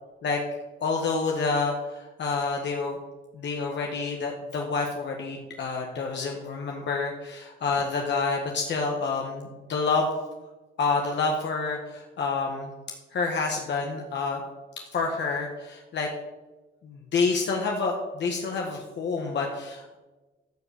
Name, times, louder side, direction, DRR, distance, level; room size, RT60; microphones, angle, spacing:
voice 1, 0.8-3.0 3.3-10.1 10.8-12.7 13.1-14.4 14.9-16.1 16.8-20.0, left 4 dB, 65° left, 1 dB, 1.7 m, -28 dB
14.5 x 5.0 x 6.7 m, 1.1 s
cardioid pair, 90°, 20 cm